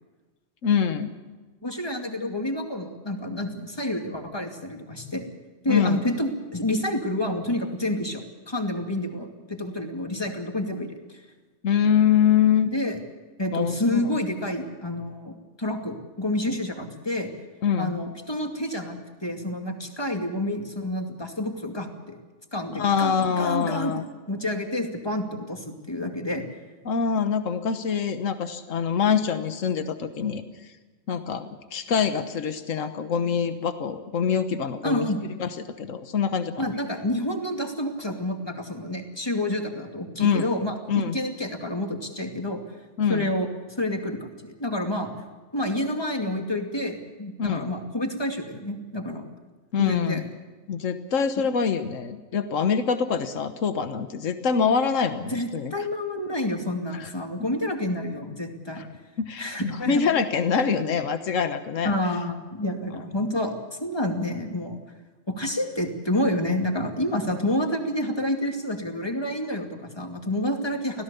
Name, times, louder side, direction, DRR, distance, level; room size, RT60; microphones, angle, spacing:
voice 1, 0.6-1.1 5.7-6.1 11.6-12.7 13.5-14.0 17.6-18.0 22.7-24.0 26.8-30.7 31.1-35.1 35.4-35.5 35.8-36.7 40.2-40.5 40.9-41.2 43.0-43.3 47.4-47.7 49.7-50.2 50.7-55.7 56.9-57.1 58.8-58.9 59.2-61.9 62.9-63.0, left 7 dB, 80° left, 9 dB, 1.5 m, -25 dB
voice 2, 1.6-5.3 5.6-11.2 12.7-13.0 13.4-17.3 17.8-22.2 22.5-26.4 34.8-35.2 36.6-42.6 43.1-45.1 45.5-49.2 49.8-50.2 55.3-58.8 59.4-60.0 61.8-63.5 63.8-64.8 65.3-71.0, left 1 dB, 20° left, 3 dB, 2.4 m, -29 dB
25.5 x 17.0 x 7.0 m, 1.3 s
omnidirectional pair, 1.3 m